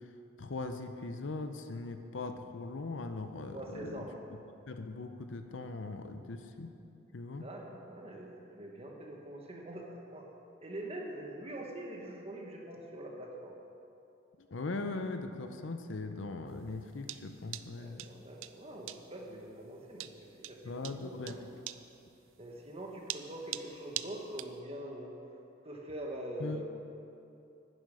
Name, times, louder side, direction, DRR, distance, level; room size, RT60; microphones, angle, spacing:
voice 1, 0.4-4.0 4.7-6.7 7.1-7.4 14.5-18.1 20.6-21.4 26.4-26.6, left 3 dB, 75° left, 7 dB, 0.7 m, -40 dB
voice 2, 3.5-4.1 7.4-10.3 10.6-13.5 17.8-21.4 22.4-25.2 25.6-26.6, right 1 dB, 30° right, 0 dB, 1.4 m, -44 dB
sound 1, 16.5-24.6, right 14 dB, 85° right, 0.4 m, -43 dB
11.0 x 11.0 x 4.9 m, 2.8 s
head